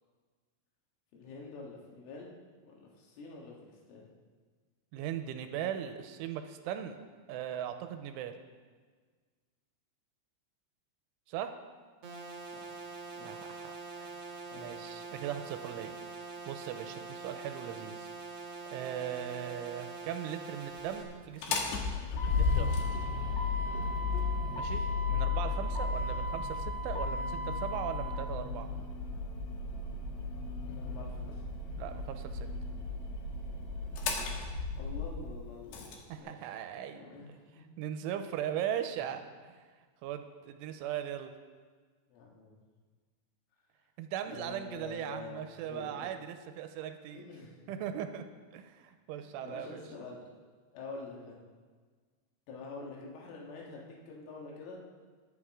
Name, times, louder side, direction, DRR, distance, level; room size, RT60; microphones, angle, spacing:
voice 1, 1.1-2.3 2.6-4.1 12.4-12.8 13.2-13.7 14.5-14.8 24.4-24.9 30.6-31.4 34.7-36.5 36.9-37.6 42.1-42.6 44.3-46.1 47.1-48.1 49.1-50.2 50.7-51.4 52.5-54.8, left 3 dB, 90° left, -3 dB, 4.3 m, -47 dB
voice 2, 4.9-7.0 7.3-8.4 11.3-11.5 13.3-13.6 14.0-14.2 14.6-16.0 16.5-18.1 18.7-21.7 22.3-22.7 24.6-24.8 25.1-28.7 31.8-32.5 36.1-37.0 37.8-39.6 40.0-41.3 44.0-47.2 47.7-48.2 48.5-49.8, right 10 dB, 90° right, 8 dB, 3.2 m, -39 dB
sound 1, 12.0-21.0, right 4 dB, 60° right, 1.6 m, -44 dB
Motor vehicle (road), 21.3-35.9, left 4 dB, 70° left, 3.1 m, -34 dB
21.0 x 8.6 x 3.7 m, 1.5 s
omnidirectional pair, 5.5 m